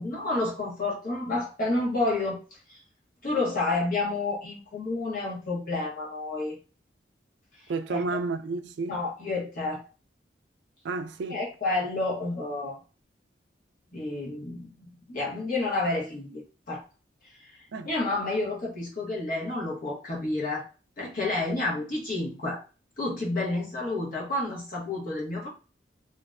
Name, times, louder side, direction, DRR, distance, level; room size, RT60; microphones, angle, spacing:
voice 1, 0.0-2.8 3.2-6.6 7.9-8.0 8.9-9.9 11.3-12.8 13.9-16.4 16.7-16.8 17.4-17.6 17.8-20.6 21.0-22.6 23.0-25.5, left 2 dB, 50° left, 1.0 m, -30 dB
voice 2, 7.7-9.0 10.8-11.5 17.7-17.9, right 3 dB, 70° right, 0.3 m, -31 dB
2.6 x 2.2 x 2.4 m
head